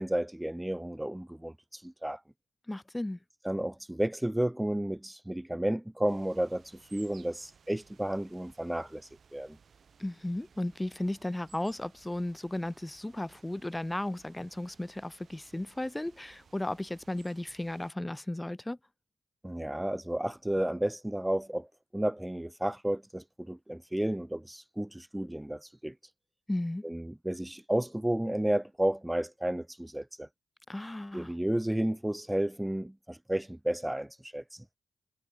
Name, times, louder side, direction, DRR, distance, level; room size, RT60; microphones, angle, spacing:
voice 1, 0.0-2.2 3.4-6.6 6.9-9.0 9.3-9.6 19.4-21.7 21.9-25.9 26.8-30.3 31.1-34.6, right 1 dB, 10° right, 0.4 m, -32 dB
voice 2, 2.7-3.2 10.0-18.8 26.5-26.8 30.7-31.3, left 1 dB, 15° left, 0.9 m, -35 dB
sound 1, 6.1-17.9, right 6 dB, 65° right, 5.4 m, -61 dB
cardioid pair, 55°, 0 cm